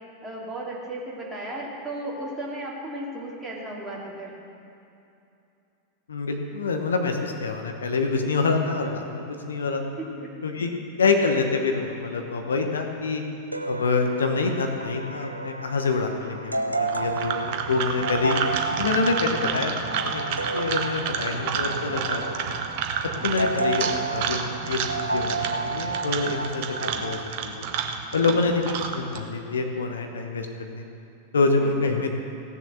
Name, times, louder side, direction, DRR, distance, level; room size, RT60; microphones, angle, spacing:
voice 1, 0.0-4.3 10.2-10.3 10.6-10.7 16.4-16.7 21.5-21.8 23.2-23.6 28.2-28.5 31.6-32.0, right 1 dB, 10° right, -5 dB, 2.6 m, -36 dB
voice 2, 6.1-10.0 10.4-10.7 11.0-13.2 13.7-18.4 18.7-19.7 20.0-22.5 23.2-27.7 28.1-30.9 31.3-32.1, left 4 dB, 70° left, 4 dB, 1.0 m, -26 dB
sound 1, 13.5-27.2, right 3 dB, 85° right, 0.5 m, -32 dB
sound 2, 16.8-29.2, right 7 dB, 45° right, 0.9 m, -30 dB
16.5 x 7.0 x 6.8 m, 2.7 s
figure-of-eight pair, 90°, 0 cm